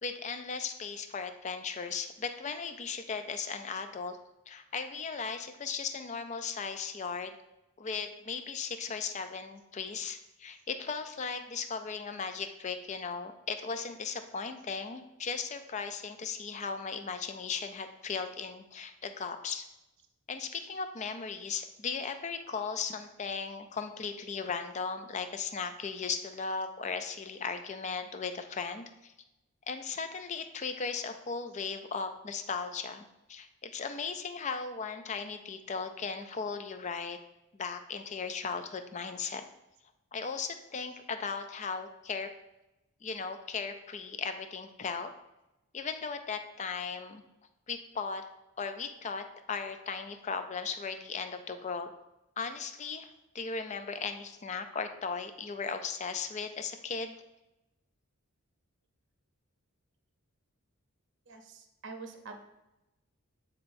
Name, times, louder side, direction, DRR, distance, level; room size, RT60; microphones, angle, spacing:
voice 1, 0.0-4.2 4.5-7.3 7.8-19.7 20.3-29.1 29.7-37.2 37.5-39.4 40.1-42.3 43.0-45.1 45.7-47.2 47.7-48.2 48.6-51.9 52.4-53.1 53.3-57.2, left 5 dB, 30° left, 8 dB, 0.4 m, -37 dB
voice 2, 61.8-62.4, right 3 dB, 55° right, 4 dB, 0.7 m, -44 dB
8.8 x 4.2 x 2.6 m, 0.95 s
head